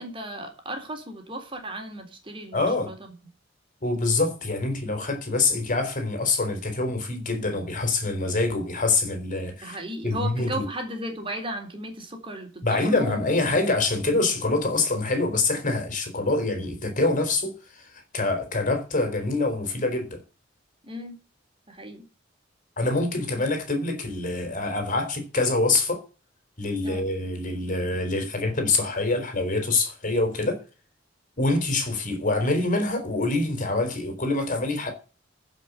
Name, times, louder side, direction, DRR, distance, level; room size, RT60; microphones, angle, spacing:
voice 1, 0.0-2.9 9.6-13.2 20.8-21.2 21.7-22.0 26.8-27.0, right 1 dB, 30° right, 3.7 m, -35 dB
voice 2, 2.5-2.9 3.8-9.8 10.0-10.7 12.6-20.2 22.8-26.0 26.6-30.6 31.4-34.9, left 2 dB, 45° left, 4.1 m, -25 dB
15.0 x 6.0 x 8.1 m
head